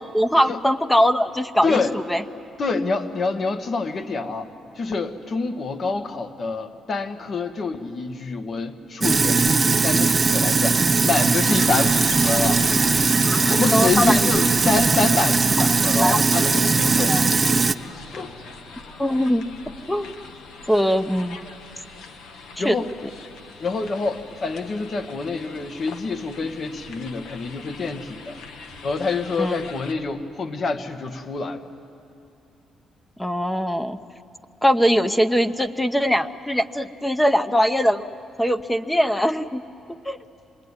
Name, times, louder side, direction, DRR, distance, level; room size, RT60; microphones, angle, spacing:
voice 1, 0.1-2.2 13.2-14.3 16.0-16.4 17.0-17.2 19.0-20.1 20.7-21.4 22.6-22.7 29.4-29.6 33.2-34.0 34.6-38.0 38.4-39.6 40.0-40.2, equal, 5° left, 10 dB, 0.8 m, -21 dB
voice 2, 1.6-1.9 2.6-4.5 4.7-12.6 13.4-17.2 18.1-18.3 22.6-22.9 23.6-28.4 28.8-31.6, left 4 dB, 50° left, 9 dB, 1.3 m, -26 dB
Sink (filling or washing), 9.0-17.7, right 4 dB, 30° right, 0.6 m, -19 dB
sound 1, 11.5-29.9, left 4 dB, 80° left, 1.3 m, -40 dB
26.0 x 20.5 x 9.6 m, 2.7 s
cardioid pair, 90°, 0 cm